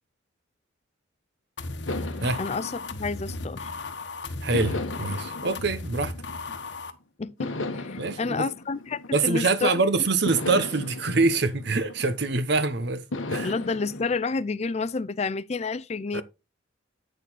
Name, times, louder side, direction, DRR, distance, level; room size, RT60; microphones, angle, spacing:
sound 1, 1.6-6.9, left 2 dB, 65° left, 1.2 m, -36 dB
sound 2, 1.9-3.9 4.5-6.8 7.4-9.7 10.3-12.5 13.1-14.2, left 2 dB, 90° left, 1.2 m, -36 dB
voice 1, 2.4-3.7 7.2-9.7 13.4-16.2, left 4 dB, 35° left, 0.4 m, -30 dB
voice 2, 4.4-6.1 8.0-8.5 9.1-13.0 13.3-13.5 16.1-16.2, right 3 dB, 60° right, 1.0 m, -25 dB
9.0 x 6.7 x 4.1 m
head